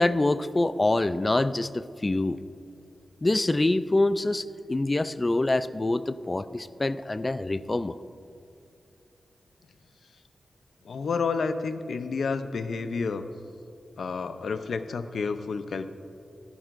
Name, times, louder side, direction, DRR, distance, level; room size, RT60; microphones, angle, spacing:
voice 1, 0.0-2.4 3.2-4.4 4.7-8.0, left 2 dB, 25° left, 14 dB, 0.4 m, -25 dB
voice 2, 10.8-13.3 14.0-15.9, left 4 dB, 80° left, 10 dB, 0.6 m, -30 dB
16.5 x 10.5 x 2.5 m, 2.6 s
wide cardioid pair, 80°, 0 cm